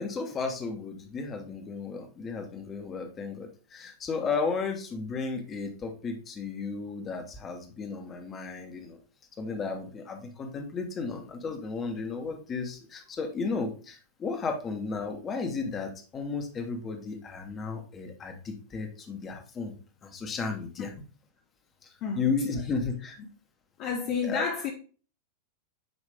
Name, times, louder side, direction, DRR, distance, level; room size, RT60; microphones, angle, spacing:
voice 1, 0.0-9.0 9.4-19.7 20.0-20.9 22.2-23.2 24.2-24.4, left 4 dB, 25° left, 1.3 m, -34 dB
voice 2, 23.8-24.7, left 5 dB, 40° left, 0.8 m, -29 dB
9.1 x 3.1 x 3.4 m
figure-of-eight pair, 90°, 0 cm